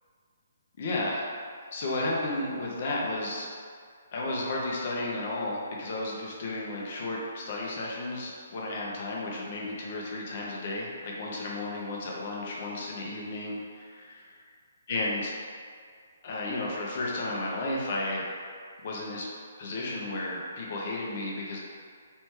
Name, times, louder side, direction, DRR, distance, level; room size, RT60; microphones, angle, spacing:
voice 1, 0.8-1.2 1.7-3.5 4.1-14.3 14.9-15.3 16.2-18.3 18.8-19.3 19.6-21.6, left 2 dB, 50° left, -3 dB, 0.8 m, -33 dB
3.2 x 3.1 x 3.1 m, 2.1 s
figure-of-eight pair, 135°, 0 cm